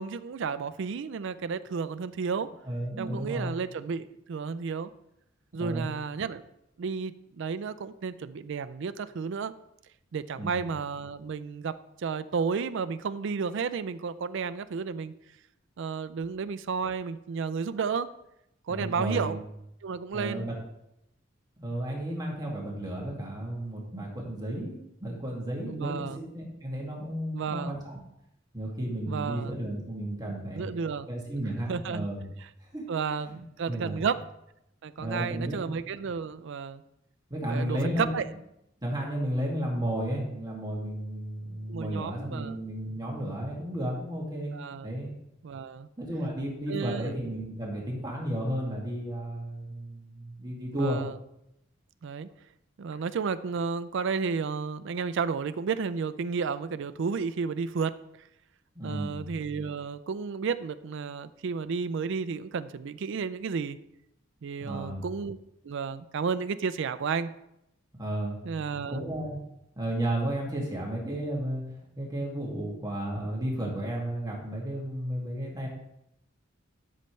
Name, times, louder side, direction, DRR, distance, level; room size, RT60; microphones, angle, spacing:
voice 1, 0.0-2.5 3.0-4.9 5.5-6.4 6.8-9.5 10.1-15.1 15.8-18.1 18.7-19.4 19.8-20.5 25.7-26.2 27.3-27.8 29.1-29.5 30.5-31.1 31.7-32.1 32.9-34.2 34.8-36.8 37.5-38.3 41.7-42.6 44.5-44.9 45.4-45.9 46.7-47.2 50.7-51.1 52.0-52.3 52.8-57.9 58.8-63.8 64.4-65.4 65.6-67.3 68.4-69.0, right 5 dB, 65° right, 12 dB, 0.4 m, -32 dB
voice 2, 2.6-3.6 5.5-5.9 10.3-10.7 18.7-19.4 20.1-20.5 21.6-26.1 26.3-28.0 28.5-30.7 31.1-32.2 32.7-32.9 33.7-34.0 35.0-35.7 37.3-38.1 38.8-44.6 44.8-45.1 46.0-51.0 58.8-59.2 64.6-65.0 68.0-68.4 68.9-69.4 69.8-75.7, right 1 dB, 20° right, -3 dB, 2.1 m, -33 dB
12.5 x 6.6 x 3.2 m, 0.82 s
head